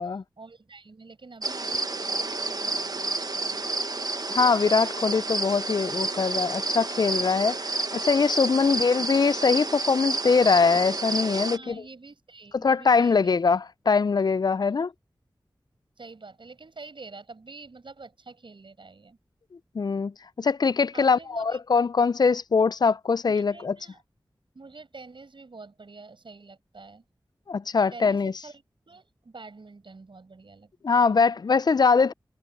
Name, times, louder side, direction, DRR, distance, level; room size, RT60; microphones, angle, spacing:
voice 1, 0.4-3.8 8.4-8.7 11.5-13.4 16.0-19.2 20.9-21.9 23.3-24.0 24.5-27.0 27.9-31.1, right 3 dB, 70° right, 6.9 m, -47 dB
sound 1, 1.4-11.6, right 2 dB, 50° right, 1.1 m, -30 dB
voice 2, 4.3-11.8 12.6-14.9 19.8-20.1 20.4-23.7 27.5-28.3 30.8-32.1, left 5 dB, 50° left, 0.4 m, -22 dB
wide cardioid pair, 50°, 9 cm